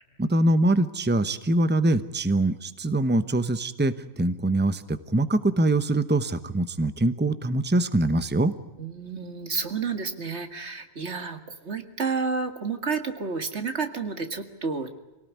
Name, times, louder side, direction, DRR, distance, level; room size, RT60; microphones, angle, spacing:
voice 1, 0.2-8.5, right 2 dB, 10° right, 12 dB, 0.9 m, -23 dB
voice 2, 8.8-14.9, right 5 dB, 80° right, 7 dB, 2.3 m, -30 dB
25.5 x 18.0 x 9.5 m, 1.1 s
omnidirectional pair, 1.1 m